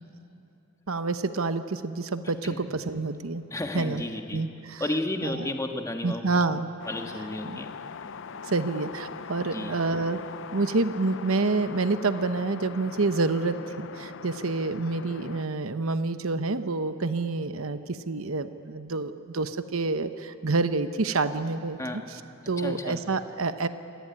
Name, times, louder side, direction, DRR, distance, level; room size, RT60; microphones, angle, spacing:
voice 1, 0.9-3.4 3.7-4.0 4.3-4.8 5.2-5.5 6.0-6.7 7.4-7.6 8.4-10.2 10.5-21.8 22.5-23.7, right 3 dB, 75° right, 10 dB, 1.0 m, -28 dB
voice 2, 2.2-2.6 3.5-4.4 4.8-6.3 6.9-7.7 9.5-9.7 21.8-22.0 22.6-23.0, left 1 dB, 15° left, 4 dB, 1.5 m, -32 dB
sound 1, 6.8-15.5, left 6 dB, 60° left, 0.6 m, -41 dB
26.0 x 18.5 x 9.9 m, 2.7 s
head